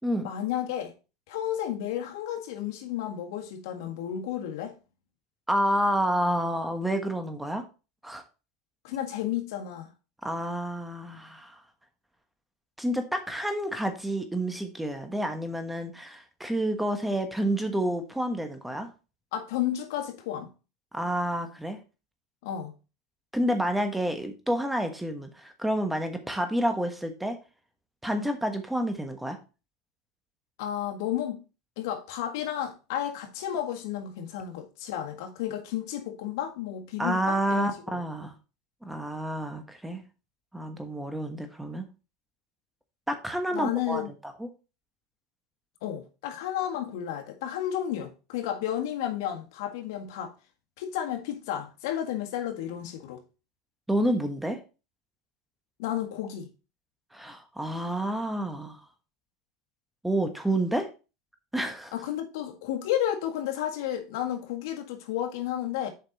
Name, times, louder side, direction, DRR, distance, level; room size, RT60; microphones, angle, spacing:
voice 1, 0.2-0.9 1.3-4.8 8.8-9.9 19.3-20.5 22.4-22.7 30.6-31.4 31.8-38.0 43.5-44.1 45.8-50.3 50.8-53.2 55.8-56.5 61.9-65.9, left 11 dB, 75° left, 1.7 m, -32 dB
voice 2, 5.5-7.6 8.0-8.2 10.2-11.6 12.8-18.9 20.9-21.8 23.3-27.4 28.0-29.4 37.0-38.3 38.8-40.0 40.5-41.9 43.1-44.5 53.9-54.6 57.1-58.8 60.0-60.9 61.5-61.9, right 1 dB, 5° right, 1.2 m, -29 dB
7.4 x 5.2 x 4.1 m
supercardioid pair, 130°, 2 cm